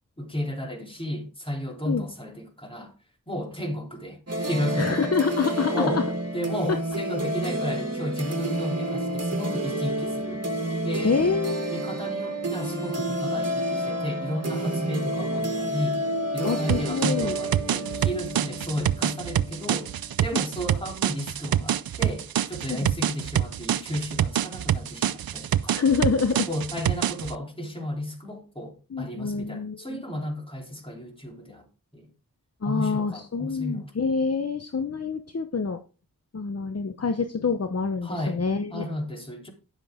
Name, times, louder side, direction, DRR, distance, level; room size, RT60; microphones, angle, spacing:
voice 1, 0.2-2.9 3.3-5.1 5.7-6.0 6.3-10.4 10.8-11.2 11.7-16.0 16.3-19.9 20.2-25.8 26.5-31.7 31.9-32.1 32.6-33.8 38.0-38.4 38.7-39.5, left 1 dB, 15° left, 3.3 m, -33 dB
sound 1, 4.3-20.9, right 1 dB, 45° right, 2.0 m, -30 dB
voice 2, 4.8-6.0 6.7-6.8 11.0-11.7 15.3-15.4 16.4-17.4 20.3-20.4 22.7-22.9 25.7-26.5 28.9-30.0 32.6-35.8 36.3-38.9, left 5 dB, 45° left, 0.9 m, -26 dB
sound 2, 16.7-27.3, right 10 dB, 85° right, 0.5 m, -26 dB
10.5 x 7.6 x 3.6 m
wide cardioid pair, 55°, 35 cm